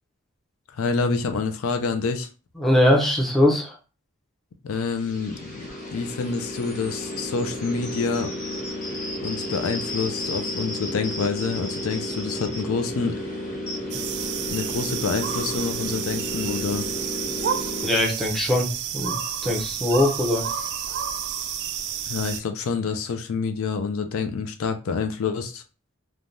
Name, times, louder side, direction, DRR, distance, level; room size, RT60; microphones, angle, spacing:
voice 1, 0.7-2.3 4.6-5.6 5.9-8.3 9.2-13.2 14.5-16.9 22.1-25.6, left 5 dB, 75° left, 8 dB, 0.4 m, -27 dB
voice 2, 2.6-3.7 17.8-20.5, left 1 dB, ahead, 0 dB, 0.6 m, -21 dB
sound 1, 4.7-17.9, left 1 dB, 40° left, 0.9 m, -32 dB
sound 2, 13.9-22.4, right 8 dB, 55° right, 0.3 m, -30 dB
3.2 x 2.2 x 2.5 m, 0.34 s
head